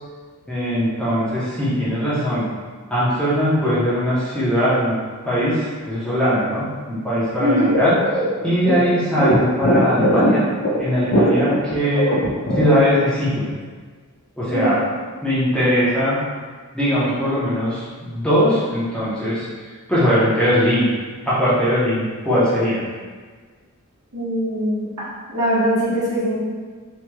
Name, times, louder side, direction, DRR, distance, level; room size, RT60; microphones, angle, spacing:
voice 1, 0.5-2.5 2.9-5.0 5.2-8.0 8.4-10.5 10.8-12.1 12.5-13.5 14.4-14.8 15.2-16.2 16.7-19.5 19.9-20.9 21.3-22.9, equal, 5° left, -10 dB, 0.7 m, -20 dB
voice 2, 7.4-7.8 14.5-14.7 24.1-24.9 25.3-26.3, equal, 75° right, -9 dB, 1.1 m, -21 dB
sound 1, 7.7-13.0, equal, 55° left, 0.5 m, -19 dB
3.1 x 2.9 x 2.2 m, 1.5 s
head